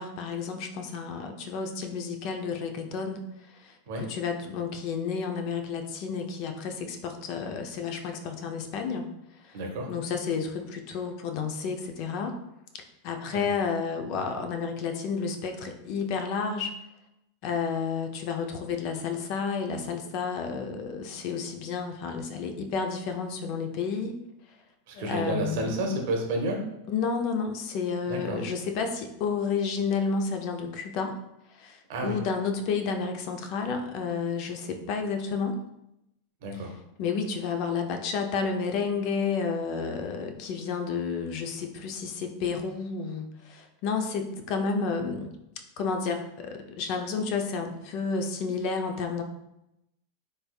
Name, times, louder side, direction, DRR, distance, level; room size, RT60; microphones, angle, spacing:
voice 1, 0.0-3.2 3.6-9.1 9.4-9.6 9.9-12.4 13.0-16.7 17.4-24.1 24.9-25.8 26.9-31.2 31.5-35.6 37.0-45.3 45.8-49.2, left 5 dB, 45° left, 5 dB, 0.4 m, -31 dB
voice 2, 9.5-9.9 13.3-13.5 24.9-26.6 28.1-28.4 31.9-32.2 36.4-36.7, right 1 dB, 60° right, 2 dB, 0.8 m, -30 dB
3.3 x 3.1 x 2.3 m, 0.85 s
supercardioid pair, 150°, 0 cm